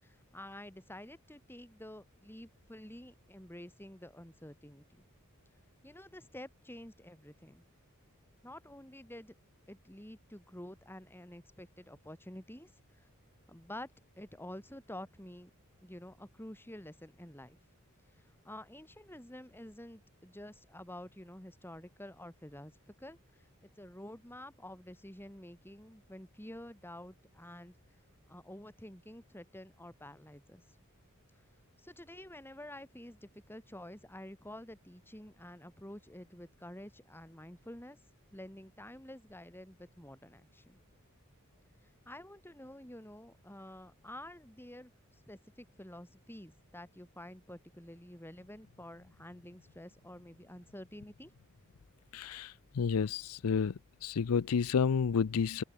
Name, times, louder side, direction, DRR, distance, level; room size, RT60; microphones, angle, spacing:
voice 1, 0.0-5.0 5.8-7.6 8.4-9.3 9.7-12.7 13.5-13.9 14.2-15.5 15.8-17.6 18.4-23.2 23.8-27.7 28.3-30.6 31.8-38.0 38.3-40.8 42.0-44.9 45.3-51.3, left 1 dB, 10° left, 6.2 m, -49 dB
voice 2, 52.1-53.7 54.0-55.6, left 6 dB, 80° left, 0.5 m, -30 dB
open air
head